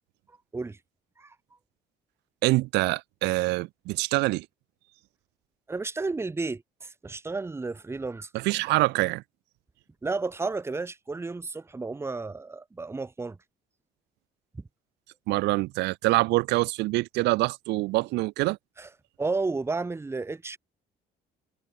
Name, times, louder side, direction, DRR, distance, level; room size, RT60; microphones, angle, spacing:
voice 1, 2.4-4.4 8.3-9.2 15.3-18.6, right 20 dB, 90° right, 1.5 m, -25 dB
voice 2, 5.7-8.3 10.0-13.4 14.5-14.6 18.8-18.9 19.2-20.6, right 3 dB, 15° right, 1.1 m, -32 dB
cardioid pair, 110°, 17 cm